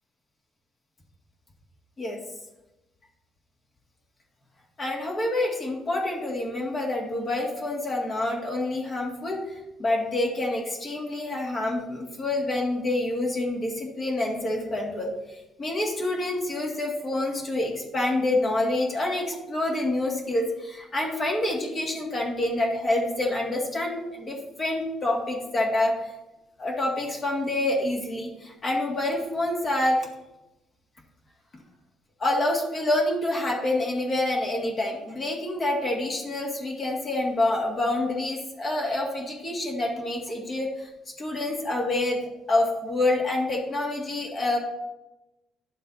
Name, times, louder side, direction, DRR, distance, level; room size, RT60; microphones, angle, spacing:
voice 1, 4.8-26.1 26.6-30.1 32.2-40.9 41.2-42.2 42.5-44.6, left 2 dB, 40° left, -1 dB, 1.9 m, -27 dB
11.0 x 7.4 x 2.7 m, 0.98 s
cardioid pair, 100°, 0 cm